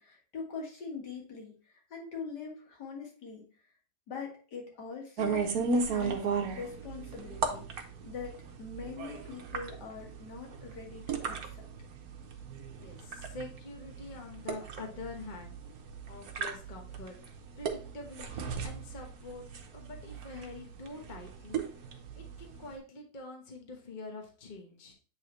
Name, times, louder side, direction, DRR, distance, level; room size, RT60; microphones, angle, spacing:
voice 1, 0.0-3.5 4.1-11.5, left 5 dB, 80° left, 0 dB, 2.2 m, -43 dB
sound 1, 5.2-22.7, right 5 dB, 65° right, 1.2 m, -36 dB
voice 2, 12.7-15.6 16.1-17.2 17.6-19.5 19.7-21.7 22.2-24.9, left 3 dB, 30° left, 2 dB, 1.1 m, -45 dB
8.6 x 3.6 x 3.1 m, 0.38 s
omnidirectional pair, 1.8 m